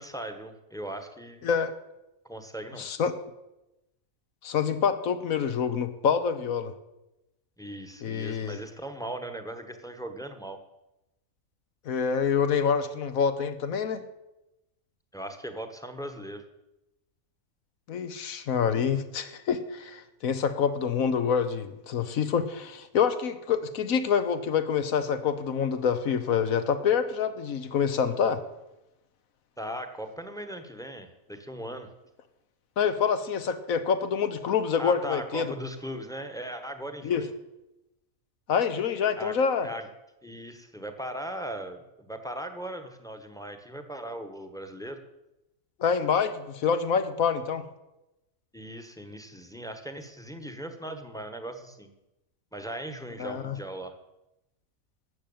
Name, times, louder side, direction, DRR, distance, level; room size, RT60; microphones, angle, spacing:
voice 1, 0.0-1.5 2.2-2.9 7.6-10.6 15.1-16.5 29.6-31.9 34.8-37.3 39.2-39.9 40.2-45.0 48.5-51.9 52.5-54.0, right 1 dB, 5° left, 8 dB, 1.1 m, -38 dB
voice 2, 2.8-3.1 4.4-6.7 8.0-8.6 11.9-14.0 17.9-28.4 32.8-35.5 37.0-37.2 38.5-39.7 45.8-47.6 53.2-53.6, left 6 dB, 75° left, 11 dB, 1.4 m, -26 dB
12.5 x 7.7 x 8.7 m, 0.94 s
omnidirectional pair, 1.5 m